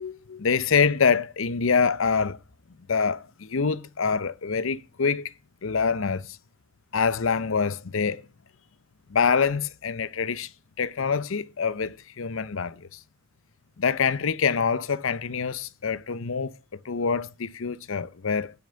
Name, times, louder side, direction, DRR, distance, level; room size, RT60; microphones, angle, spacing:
voice 1, 0.0-2.4 2.9-5.3 5.6-6.4 6.9-8.2 9.1-10.5 10.8-13.0 13.8-16.5 16.8-18.5, left 5 dB, 65° left, 0.6 m, -25 dB
8.8 x 5.9 x 7.6 m
head